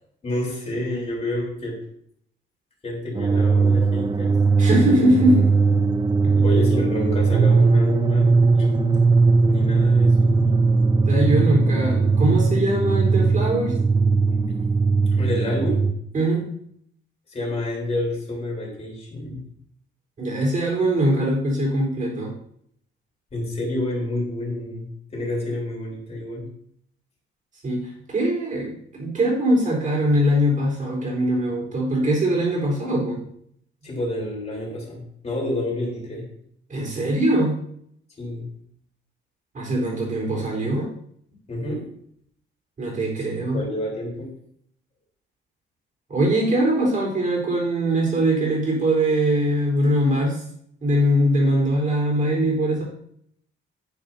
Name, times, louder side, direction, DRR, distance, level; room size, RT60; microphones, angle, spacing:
voice 1, 0.2-1.8 2.8-4.4 6.4-8.8 9.5-10.4 15.1-15.9 17.3-19.4 23.3-26.5 33.8-36.3 38.2-38.5 41.5-41.9 43.2-44.3, left 1 dB, 30° left, -3 dB, 3.8 m, -29 dB
sound 1, 3.1-15.9, right 4 dB, 20° right, 0.6 m, -19 dB
voice 2, 4.6-5.5 6.2-6.4 11.1-13.7 16.1-16.4 20.2-22.3 27.6-33.2 36.7-37.6 39.5-40.9 42.8-43.6 46.1-50.4 50.8-52.8, right 1 dB, 40° right, -2 dB, 4.0 m, -22 dB
9.9 x 9.3 x 2.7 m, 0.68 s
cardioid pair, 140°, 21 cm